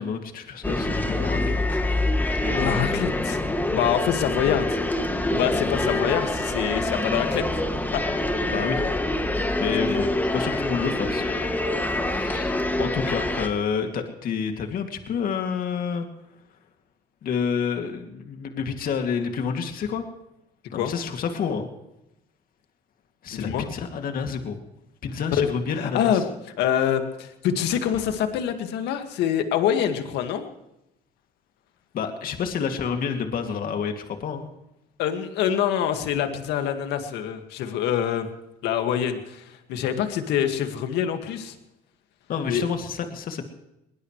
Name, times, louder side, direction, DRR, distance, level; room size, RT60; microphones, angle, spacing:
voice 1, 0.0-1.8 2.4-2.8 4.4-4.6 8.5-8.9 9.6-11.2 12.1-16.1 17.2-20.0 20.7-21.7 23.2-24.6 25.0-26.2 31.9-34.5 42.3-43.4, left 6 dB, 60° left, 5 dB, 2.5 m, -29 dB
sound 1, 0.6-13.5, left 1 dB, 10° left, 2.1 m, -25 dB
voice 2, 2.5-3.4 3.7-4.7 5.3-7.4 7.9-8.0 9.9-10.1 20.7-20.9 23.3-23.7 25.4-25.5 25.7-26.3 26.6-30.4 35.0-38.3 38.6-41.5 42.5-42.6, left 9 dB, 85° left, 6 dB, 2.0 m, -25 dB
22.0 x 20.0 x 3.2 m, 0.87 s
cardioid pair, 110°, 17 cm